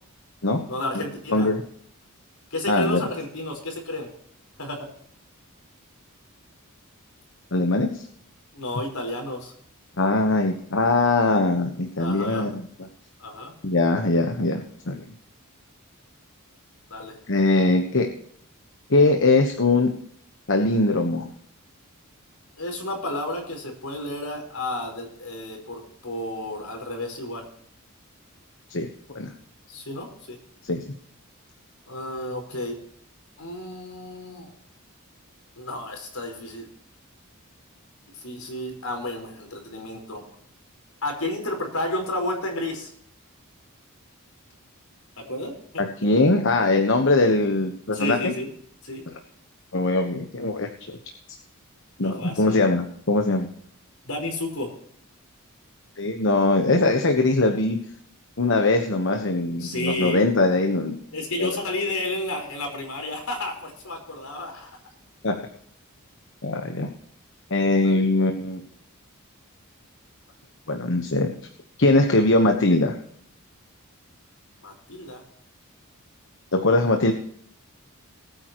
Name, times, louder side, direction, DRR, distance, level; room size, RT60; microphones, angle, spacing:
voice 1, 0.7-1.5 2.5-4.1 4.6-4.9 8.5-9.5 12.0-12.6 13.2-13.5 16.9-17.2 22.6-27.4 29.7-30.4 31.9-32.8 33.4-34.5 35.6-36.7 38.1-40.2 41.0-42.9 45.2-45.5 47.9-48.5 48.8-49.0 52.0-52.6 54.1-54.7 59.6-60.3 61.1-64.8 67.8-68.0 74.6-75.2, left 1 dB, 75° left, 2 dB, 4.8 m, -31 dB
voice 2, 2.7-3.1 7.5-8.0 10.0-12.7 13.6-15.1 17.3-18.1 18.9-19.9 20.5-21.3 28.7-29.3 30.6-30.8 45.8-48.3 49.7-50.7 52.0-53.5 56.0-57.8 58.4-60.9 61.4-61.5 65.2-65.3 66.4-66.9 67.5-68.6 70.7-71.3 71.8-72.9 76.5-77.1, left 2 dB, 60° left, 4 dB, 1.3 m, -21 dB
20.0 x 9.1 x 3.1 m, 0.65 s
head